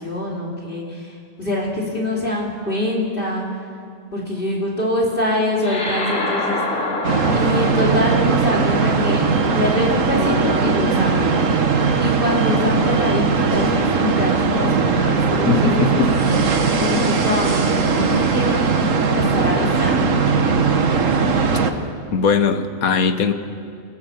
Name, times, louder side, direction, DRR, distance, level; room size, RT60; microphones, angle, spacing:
voice 1, 0.0-3.6 4.1-6.8 7.3-9.2 9.5-11.3 12.0-16.4 16.8-18.6 19.1-20.0, left 1 dB, 40° left, -3 dB, 3.1 m, -24 dB
sound 1, 5.6-10.3, left 2 dB, 65° left, 3.2 m, -28 dB
sound 2, 7.0-21.7, right 4 dB, 65° right, 1.6 m, -19 dB
voice 2, 15.5-16.1 22.1-23.3, left 5 dB, 80° left, 9 dB, 1.6 m, -19 dB
29.0 x 16.0 x 7.2 m, 2.3 s
omnidirectional pair, 1.5 m